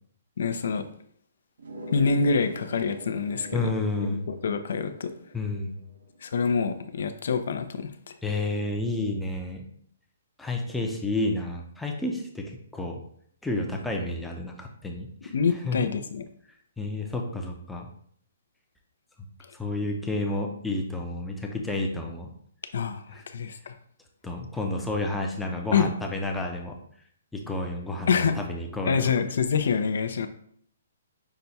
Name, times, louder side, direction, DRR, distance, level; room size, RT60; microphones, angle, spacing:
voice 1, 0.4-0.8 1.9-3.7 4.0-5.1 6.2-8.1 15.3-16.3 22.7-23.7 25.7-25.9 28.1-28.4 28.8-30.3, left 5 dB, 70° left, 9 dB, 0.5 m, -26 dB
sound 1, 1.6-6.9, right 1 dB, 90° right, 0.9 m, -43 dB
voice 2, 3.5-4.2 5.3-5.8 8.2-9.7 10.4-13.0 13.4-15.3 15.6-15.9 16.8-17.9 19.5-22.3 23.1-23.2 24.2-26.8 27.3-29.1, left 2 dB, 5° left, 1 dB, 0.6 m, -30 dB
5.7 x 2.3 x 4.0 m, 0.63 s
hypercardioid pair, 155°, 0 cm